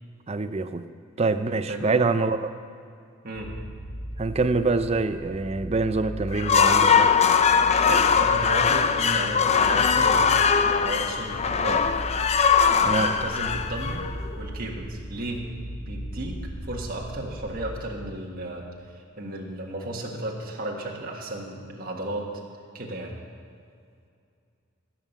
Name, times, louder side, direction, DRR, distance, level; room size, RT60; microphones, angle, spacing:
voice 1, 0.3-0.8 1.2-2.4 4.2-7.1 12.9-13.1, right 3 dB, 30° right, 10 dB, 0.5 m, -25 dB
voice 2, 1.7-2.0 3.2-3.5 7.8-10.4 10.8-11.9 12.9-14.1 14.3-15.5 15.8-18.7 18.9-22.3 22.7-23.1, right 1 dB, 45° right, -2 dB, 1.7 m, -34 dB
sound 1, 3.3-17.7, equal, 80° left, 3.2 m, -38 dB
sound 2, 6.3-14.4, left 6 dB, 30° left, 0.4 m, -21 dB
15.5 x 7.5 x 6.8 m, 2.4 s
head